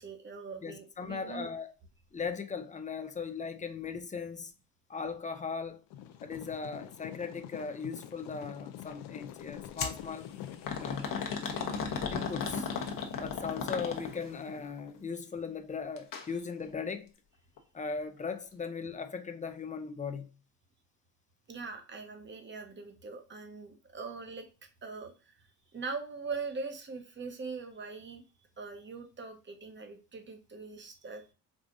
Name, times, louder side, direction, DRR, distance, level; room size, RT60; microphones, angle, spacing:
voice 1, 0.0-1.5 11.9-12.1 13.1-13.2 21.5-24.5 24.8-25.5 25.7-28.2 28.6-31.2, right 4 dB, 30° right, 0.9 m, -42 dB
voice 2, 0.6-1.7 2.1-4.5 4.9-5.8 6.2-10.3 10.7-11.2 12.1-12.7 13.2-17.1 17.7-20.3, left 5 dB, 20° left, 0.4 m, -38 dB
sound 1, 5.9-15.0, left 11 dB, 90° left, 0.5 m, -46 dB
sound 2, 9.8-10.0 10.7-14.3 16.0-16.3 16.6-16.7 17.6-17.7, left 5 dB, 55° left, 0.9 m, -35 dB
4.8 x 2.4 x 2.5 m
cardioid pair, 110°, 40 cm